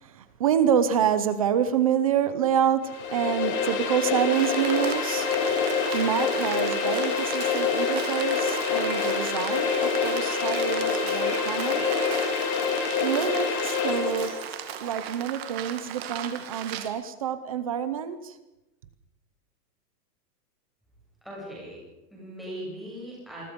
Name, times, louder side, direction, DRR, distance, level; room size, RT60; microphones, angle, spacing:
voice 1, 0.0-5.3 5.9-11.9 13.0-14.3 14.8-18.3, right 9 dB, 20° right, 12 dB, 0.7 m, -27 dB
sound 1, 2.8-14.5, left 6 dB, 20° left, 2.5 m, -26 dB
Rain, 4.3-16.9, right 11 dB, 35° right, 2.0 m, -37 dB
voice 2, 21.2-21.8 22.1-23.4, equal, ahead, -6 dB, 7.7 m, -39 dB
27.5 x 21.0 x 5.2 m, 0.98 s
supercardioid pair, 175°, 50 cm